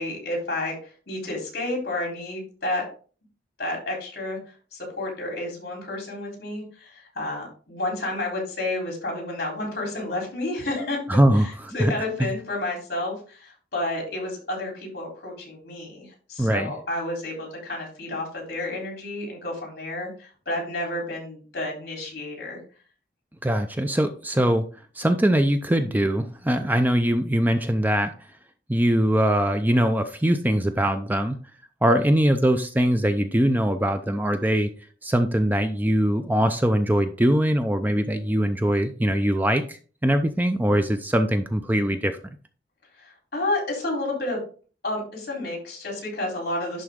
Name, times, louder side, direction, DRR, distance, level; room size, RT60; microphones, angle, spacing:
voice 1, 0.0-2.9 3.6-4.4 4.7-11.0 11.4-22.6 43.0-44.4 44.8-46.8, left 2 dB, 60° left, 0 dB, 3.7 m, -30 dB
voice 2, 11.1-11.9 12.2-12.3 16.4-16.7 23.4-24.7 25.0-28.1 28.7-31.4 31.8-34.7 35.0-42.2, right 1 dB, 10° right, 8 dB, 0.5 m, -22 dB
11.0 x 3.9 x 3.6 m, 0.39 s
head